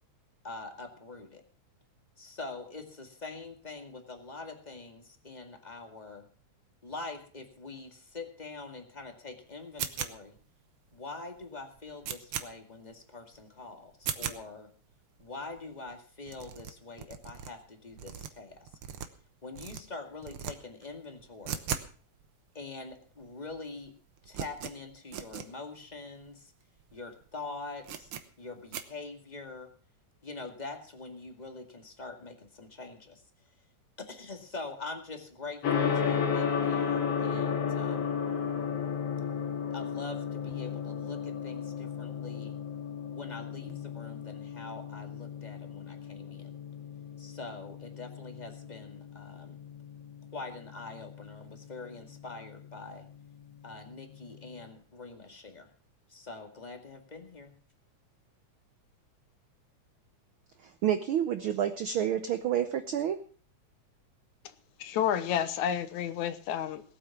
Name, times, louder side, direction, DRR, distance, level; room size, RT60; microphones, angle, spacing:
voice 1, 0.4-1.4 2.2-6.3 6.8-10.4 10.9-14.7 15.2-18.7 19.4-21.7 22.5-23.9 24.2-26.5 26.9-28.1 28.4-29.7 30.2-33.2 34.0-38.1 39.7-42.5 43.1-46.6 47.2-49.6 50.3-53.1 53.6-55.7 56.1-57.5, left 3 dB, 15° left, 4 dB, 1.7 m, -44 dB
sound 1, 9.8-10.4 10.9-11.0 11.4-11.5 11.7-12.5 12.9-13.0 13.3-13.5 13.9-14.4 14.9-15.0 15.2-15.3 15.5-15.6 15.9-16.0 16.2-17.5 17.9-19.3 19.5-19.8 20.2-20.5 20.8-21.9 22.2-22.3 22.9-23.0 23.2-23.6 23.8-25.5 25.9-26.0 26.2-26.3 26.8-27.0 27.2-27.3 27.8-28.2 28.7-28.8, right 8 dB, 60° right, 1.5 m, -38 dB
Gong, 35.6-54.6, left 7 dB, 55° left, 2.6 m, -34 dB
voice 2, 60.8-63.2, right 10 dB, 85° right, 10 dB, 1.1 m, -29 dB
voice 3, 64.8-66.8, left 9 dB, 75° left, 12 dB, 2.3 m, -30 dB
18.5 x 8.6 x 5.8 m, 0.42 s
omnidirectional pair, 3.4 m